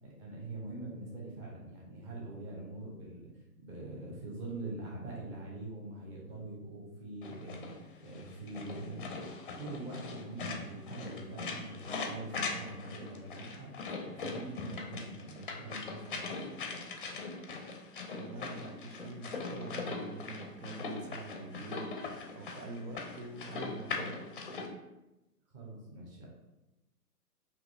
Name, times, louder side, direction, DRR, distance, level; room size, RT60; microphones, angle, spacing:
voice 1, 0.0-3.3 3.6-7.7 8.0-9.1 9.4-13.7 14.0-16.5 25.5-26.3, right 2 dB, 20° right, -4 dB, 0.7 m, -44 dB
sound 1, 7.2-24.7, left 4 dB, 35° left, 0.5 m, -41 dB
voice 2, 18.1-24.2, right 2 dB, 70° right, 4 dB, 0.8 m, -45 dB
5.8 x 2.8 x 2.6 m, 0.98 s
hypercardioid pair, 140°, 48 cm